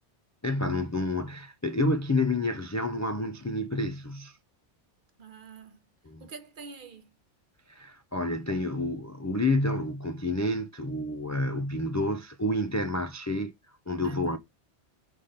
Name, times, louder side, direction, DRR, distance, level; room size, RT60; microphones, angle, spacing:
voice 1, 0.4-4.4 6.1-6.3 7.7-13.5 13.9-14.4, left 2 dB, 25° left, 0.4 m, -29 dB
voice 2, 5.2-5.8 6.2-7.2 14.0-14.4, right 5 dB, 50° right, 0.9 m, -46 dB
5.1 x 3.6 x 5.6 m
omnidirectional pair, 1.2 m